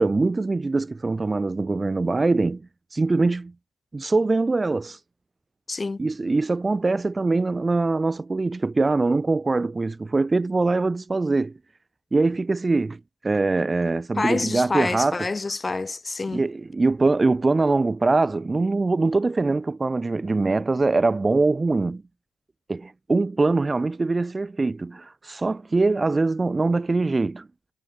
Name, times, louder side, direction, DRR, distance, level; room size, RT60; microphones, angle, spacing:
voice 1, 0.0-2.6 2.9-3.5 3.9-5.0 6.0-11.5 12.1-15.3 16.3-22.0 22.7-27.5, right 3 dB, 30° right, 0.3 m, -23 dB
voice 2, 5.7-6.1 14.1-16.4, left 3 dB, 30° left, 1.4 m, -27 dB
hypercardioid pair, 45°, 0 cm